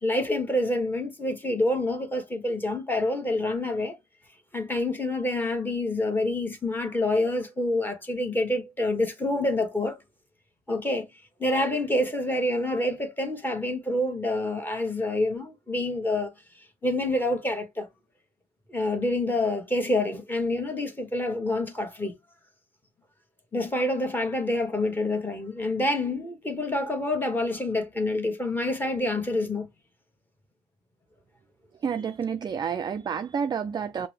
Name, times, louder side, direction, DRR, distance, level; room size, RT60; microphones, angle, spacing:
voice 1, 0.0-3.9 4.5-10.0 10.7-11.1 11.4-16.3 16.8-17.9 18.7-22.1 23.5-29.7, left 1 dB, 10° left, 1.2 m, -27 dB
voice 2, 31.8-34.1, right 7 dB, 25° right, 0.3 m, -29 dB
5.7 x 2.1 x 3.3 m
cardioid pair, 110°, 17 cm